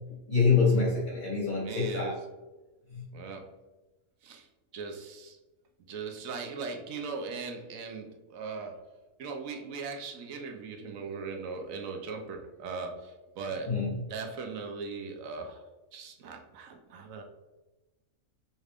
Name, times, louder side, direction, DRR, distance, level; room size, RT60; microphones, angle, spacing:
voice 1, 0.3-2.2 2.9-3.1 13.7-14.0, left 4 dB, 40° left, -5 dB, 0.9 m, -26 dB
voice 2, 1.6-2.2 3.1-3.5 4.2-4.5 4.7-5.4 5.9-8.8 9.2-13.7 14.1-15.6 15.9-17.2, right 4 dB, 90° right, 3 dB, 1.1 m, -39 dB
5.3 x 2.4 x 3.4 m, 1.1 s
omnidirectional pair, 1.4 m